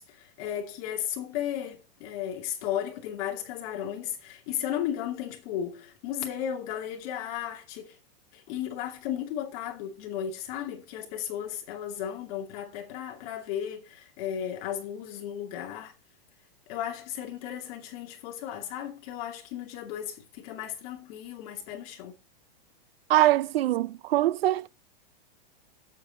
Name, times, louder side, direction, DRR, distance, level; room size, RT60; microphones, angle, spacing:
voice 1, 0.0-8.0 8.3-15.9 16.7-22.2, left 10 dB, 40° left, 2.5 m, -35 dB
voice 2, 23.1-24.7, right 14 dB, 80° right, 0.6 m, -23 dB
8.4 x 7.7 x 4.1 m
supercardioid pair, 170°, 29 cm